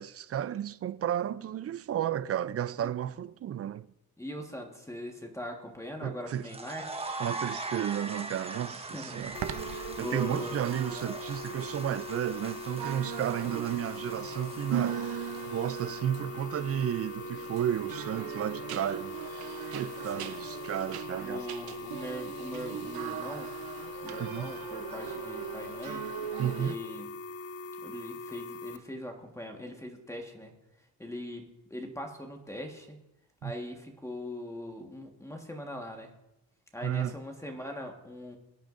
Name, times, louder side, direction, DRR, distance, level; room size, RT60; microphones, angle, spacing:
voice 1, 0.0-3.9 6.0-6.5 7.2-9.4 9.7-19.2 19.7-21.5 24.2-24.5 26.4-26.7 33.4-33.5 36.8-37.1, right 10 dB, 40° right, 0.4 m, -33 dB
voice 2, 4.2-6.9 8.9-9.4 10.0-10.6 13.4-13.5 20.1-20.4 21.2-23.5 24.0-26.1 26.4-27.1 27.8-30.5 31.0-33.0 33.4-36.1 36.7-38.4, left 1 dB, 10° left, 1.4 m, -41 dB
sound 1, 6.3-15.6, right 3 dB, 15° right, 1.2 m, -42 dB
sound 2, 9.1-26.8, right 10 dB, 70° right, 0.8 m, -40 dB
sound 3, 9.3-28.8, left 3 dB, 40° left, 0.6 m, -42 dB
22.0 x 8.9 x 2.5 m
cardioid pair, 115°, 38 cm